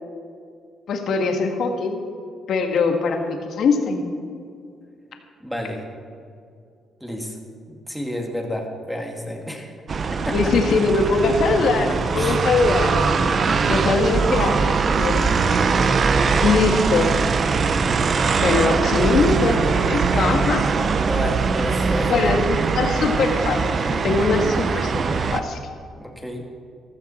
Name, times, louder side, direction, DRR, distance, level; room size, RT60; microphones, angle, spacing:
voice 1, 0.9-2.0 2.5-4.0 10.3-13.0 13.7-14.7 14.9-15.2 16.3-17.1 18.4-20.6 22.1-25.0 25.3-25.6, left 4 dB, 70° left, 4 dB, 1.6 m, -21 dB
voice 2, 5.4-5.8 7.0-7.4 7.7-9.7 10.1-10.5 12.2-12.4 13.7-14.1 16.3-16.8 21.1-22.3 26.0-26.5, equal, ahead, 1 dB, 2.4 m, -30 dB
sound 1, 9.9-25.4, right 5 dB, 45° right, 0.8 m, -21 dB
14.5 x 14.0 x 4.3 m, 2.4 s
cardioid pair, 90°, 0 cm